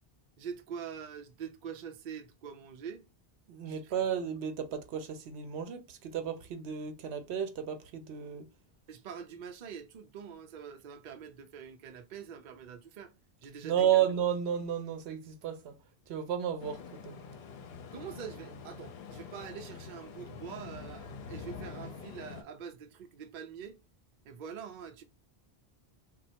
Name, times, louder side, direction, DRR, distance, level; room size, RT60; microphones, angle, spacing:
voice 1, 0.4-3.0 3.7-4.0 8.9-13.1 13.4-14.1 17.9-23.8 24.2-25.0, right 7 dB, 55° right, 0.6 m, -44 dB
voice 2, 3.5-8.4 13.6-15.7 16.1-17.2, right 9 dB, 85° right, 0.9 m, -32 dB
sound 1, 16.6-22.4, left 5 dB, 75° left, 0.8 m, -46 dB
3.1 x 2.2 x 2.8 m
omnidirectional pair, 1.1 m